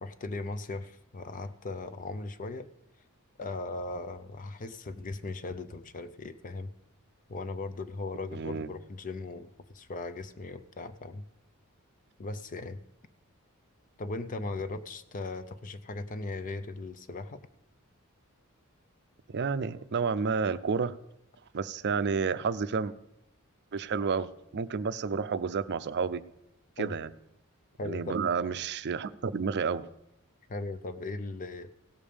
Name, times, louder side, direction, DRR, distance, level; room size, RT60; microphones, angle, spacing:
voice 1, 0.0-2.7 3.4-6.7 7.3-11.2 12.2-12.8 14.0-17.5 26.8-26.9 27.8-28.3 30.5-31.7, left 3 dB, 35° left, 11 dB, 0.6 m, -38 dB
voice 2, 8.3-8.7 19.3-20.9 21.5-22.9 23.7-26.2 26.8-27.1 27.8-29.9, right 5 dB, 50° right, 14 dB, 0.5 m, -30 dB
17.0 x 7.2 x 5.0 m, 0.82 s
head